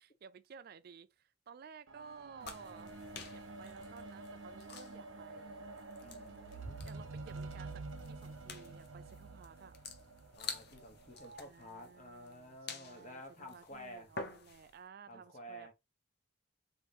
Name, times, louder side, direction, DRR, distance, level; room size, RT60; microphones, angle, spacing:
voice 1, 0.0-2.9 3.3-5.7 6.9-9.7 11.4-15.7, right 6 dB, 50° right, 0.3 m, -55 dB
sound 1, 1.9-11.4 12.2-12.3, right 3 dB, 80° right, 0.7 m, -48 dB
sound 2, 2.4-14.8, left 5 dB, 55° left, 0.8 m, -50 dB
voice 2, 6.0-6.8 10.3-14.1 15.1-15.7, equal, 40° left, 1.1 m, -51 dB
4.1 x 3.1 x 3.3 m
head